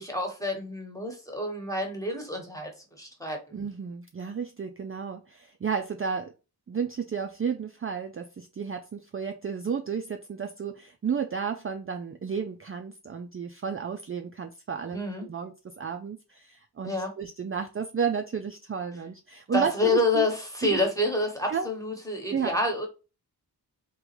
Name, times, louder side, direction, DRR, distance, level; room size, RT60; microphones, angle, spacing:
voice 1, 0.0-2.7 3.0-3.4 14.9-15.3 16.8-17.1 19.5-22.9, left 2 dB, 10° left, 1 dB, 1.2 m, -28 dB
voice 2, 3.5-6.3 6.7-20.3 20.6-20.8 21.5-21.7 22.3-22.6, right 6 dB, 35° right, 5 dB, 0.4 m, -32 dB
3.6 x 3.0 x 3.0 m, 0.31 s
wide cardioid pair, 85°, 39 cm